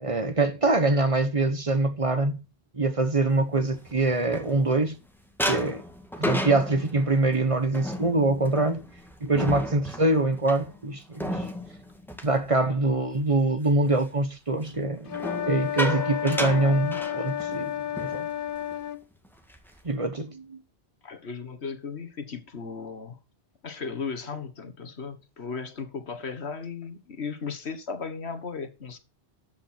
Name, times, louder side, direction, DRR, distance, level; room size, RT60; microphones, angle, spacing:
voice 1, 0.0-2.4 2.7-5.0 5.5-5.8 6.2-8.8 9.2-11.5 12.2-15.1 15.5-18.3 19.8-20.6, right 2 dB, 35° right, 1.1 m, -24 dB
sound 1, 3.5-5.0 5.4-13.2 13.6-13.9 15.1-17.7 18.0-18.2 18.5-18.8 19.3-19.9, equal, ahead, 1.8 m, -34 dB
sound 2, 15.1-19.0, left 10 dB, 60° left, 0.9 m, -31 dB
voice 2, 21.0-23.2 23.6-29.0, left 5 dB, 90° left, 1.8 m, -36 dB
13.5 x 8.3 x 4.4 m
omnidirectional pair, 1.1 m